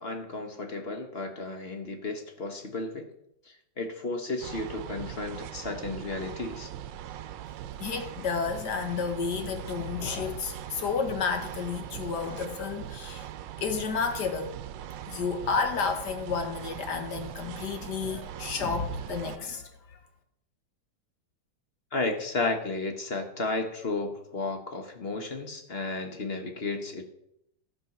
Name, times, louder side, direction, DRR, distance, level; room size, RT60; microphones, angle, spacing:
voice 1, 0.0-3.1 3.8-6.7 21.9-27.1, left 3 dB, 40° left, 1.1 m, -33 dB
sound 1, 4.4-19.4, right 11 dB, 75° right, 1.3 m, -41 dB
voice 2, 7.8-13.3 13.6-14.6 15.1-19.7, left 5 dB, 65° left, 1.8 m, -31 dB
13.5 x 5.6 x 6.0 m
omnidirectional pair, 2.0 m